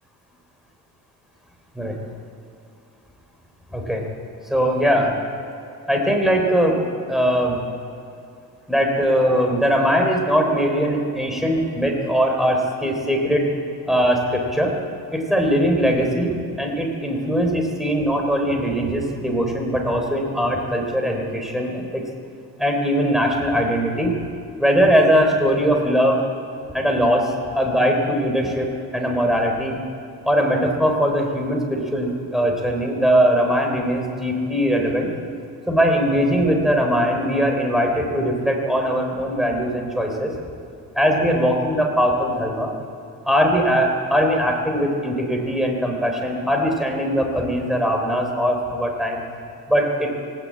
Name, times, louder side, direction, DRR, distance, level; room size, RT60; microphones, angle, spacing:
voice 1, 3.7-4.0 4.5-5.1 5.9-6.8 7.1-7.6 8.7-13.5 13.9-14.7 15.1-22.0 22.6-24.1 24.6-26.2 26.7-28.7 28.9-29.8 30.2-35.1 35.7-40.3 40.9-42.7 43.3-49.2 49.7-50.1, equal, ahead, 1 dB, 4.0 m, -20 dB
19.5 x 17.5 x 8.7 m, 2.7 s
cardioid pair, 140°, 36 cm